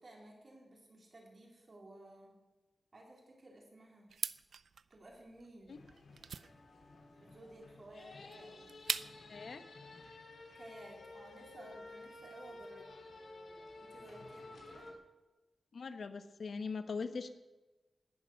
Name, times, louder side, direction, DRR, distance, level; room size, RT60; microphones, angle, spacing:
voice 1, 0.0-2.3 2.9-4.1 4.9-5.8 7.2-8.8 10.5-12.9 13.8-14.9, right 1 dB, 40° right, -1 dB, 4.2 m, -55 dB
sound 1, 4.1-9.4, right 6 dB, 85° right, 0.5 m, -43 dB
sound 2, 5.7-14.9, left 2 dB, 90° left, 3.3 m, -53 dB
voice 2, 9.3-9.6 15.7-17.3, left 4 dB, 65° left, 9 dB, 1.2 m, -41 dB
18.0 x 11.0 x 6.5 m, 1.1 s
wide cardioid pair, 180°, 0 cm